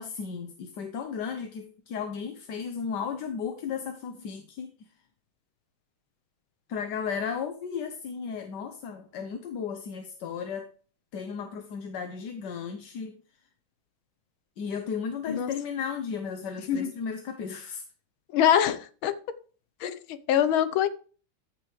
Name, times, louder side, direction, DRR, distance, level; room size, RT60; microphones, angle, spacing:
voice 1, 0.0-4.7 6.7-10.7 11.1-13.2 14.6-17.8 19.8-20.0, left 6 dB, 65° left, 7 dB, 1.4 m, -34 dB
voice 2, 18.3-19.1 19.8-19.9 20.3-20.9, left 9 dB, 85° left, 12 dB, 1.7 m, -23 dB
14.5 x 6.6 x 3.2 m, 0.39 s
omnidirectional pair, 2.2 m